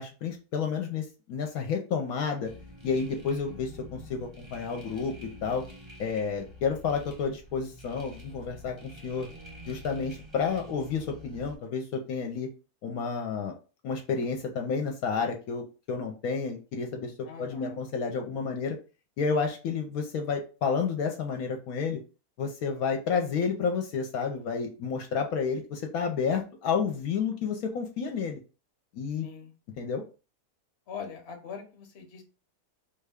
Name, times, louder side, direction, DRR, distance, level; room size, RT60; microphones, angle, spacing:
voice 1, 0.0-2.5 2.8-5.1 5.4-5.6 6.0-9.3 9.7-12.5 12.8-13.5 13.8-18.8 19.2-22.0 22.4-28.4 28.9-29.3 29.8-30.0, left 5 dB, 75° left, 3 dB, 1.0 m, -30 dB
sound 1, 2.4-11.6, equal, 25° right, 0.7 m, -47 dB
voice 2, 17.2-17.8 29.2-29.5 30.9-32.2, left 5 dB, 50° left, 5 dB, 0.9 m, -41 dB
3.8 x 2.2 x 3.4 m, 0.34 s
omnidirectional pair, 1.6 m